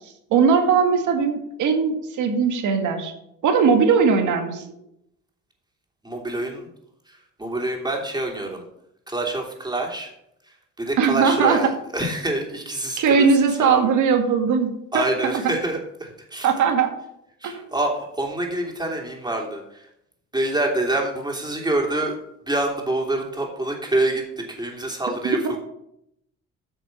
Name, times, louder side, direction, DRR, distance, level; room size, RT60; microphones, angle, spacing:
voice 1, 0.3-3.1 3.4-4.6 11.0-11.7 13.0-15.1 16.4-16.9 17.4-17.7 25.2-25.4, right 6 dB, 80° right, 5 dB, 1.9 m, -19 dB
voice 2, 6.0-6.7 7.1-8.7 9.1-10.1 10.4-13.3 13.6-13.9 14.9-16.5 17.4-19.9 20.3-22.1 22.5-25.6, right 1 dB, 15° right, 0 dB, 3.0 m, -26 dB
9.3 x 6.4 x 5.9 m, 0.78 s
cardioid pair, 90°, 30 cm